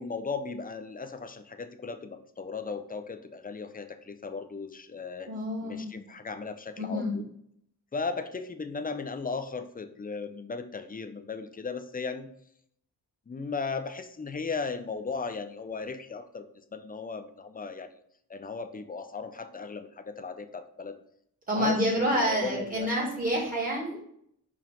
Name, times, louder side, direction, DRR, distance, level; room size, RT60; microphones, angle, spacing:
voice 1, 0.0-5.3 5.6-7.3 7.9-12.3 13.3-16.5 16.7-17.9 18.3-21.0 21.5-23.0, left 4 dB, 20° left, 8 dB, 0.5 m, -36 dB
voice 2, 5.3-6.0 6.8-7.1 21.5-24.1, equal, 20° right, -5 dB, 2.4 m, -28 dB
5.6 x 4.7 x 3.8 m, 0.70 s
wide cardioid pair, 90°, 40 cm